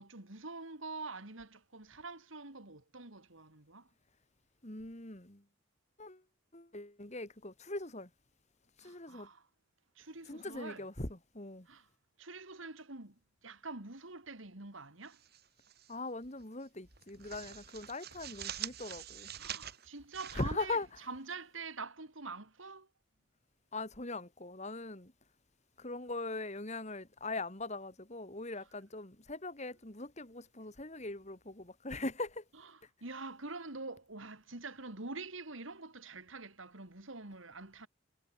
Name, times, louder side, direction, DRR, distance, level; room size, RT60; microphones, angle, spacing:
voice 1, 0.0-3.9 8.8-9.4 10.0-10.8 11.7-11.8 12.2-15.2 19.4-20.8 21.1-22.9 33.0-37.9, right 3 dB, 80° right, 3.0 m, -46 dB
voice 2, 4.6-5.4 6.0-6.2 6.5-8.1 8.8-9.3 10.3-11.7 15.9-19.3 20.3-20.9 23.7-25.1 25.8-32.4, left 2 dB, 35° left, 2.8 m, -41 dB
sound 1, 15.1-15.9 16.2-16.4 16.8-21.3, right 10 dB, 50° right, 4.2 m, -46 dB
head